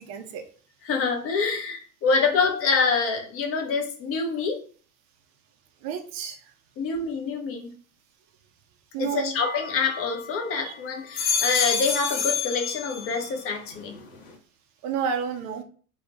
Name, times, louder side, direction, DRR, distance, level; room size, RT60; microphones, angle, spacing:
voice 1, 0.1-0.4 5.8-6.4 8.9-9.3 10.6-10.7 14.8-15.6, right 7 dB, 35° right, 6 dB, 0.4 m, -30 dB
voice 2, 0.8-4.6 6.8-7.7 9.0-14.0, left 4 dB, 30° left, 4 dB, 0.6 m, -26 dB
sound 1, 9.3-10.5 10.9-13.4 13.7-14.3, left 6 dB, 65° left, 0.9 m, -29 dB
2.4 x 2.1 x 3.3 m, 0.42 s
hypercardioid pair, 95°, 46 cm